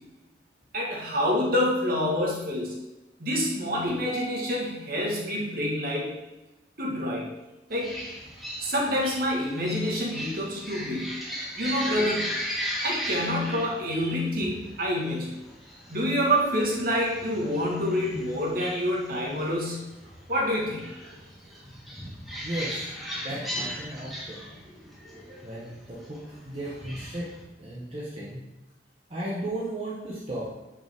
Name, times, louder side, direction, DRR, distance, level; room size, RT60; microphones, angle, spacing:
voice 1, 0.7-2.7 3.2-6.1 6.8-7.3 7.7-7.9 8.6-11.1 11.6-12.3 12.8-15.4 15.9-19.9 20.3-20.8, equal, 50° right, -2 dB, 1.7 m, -27 dB
sound 1, 7.7-27.4, equal, ahead, 1.6 m, -38 dB
voice 2, 22.4-22.8 23.1-24.5 25.4-27.3 27.6-28.4 29.1-30.5, right 1 dB, 30° right, -7 dB, 1.1 m, -35 dB
9.3 x 5.1 x 3.6 m, 1.0 s
head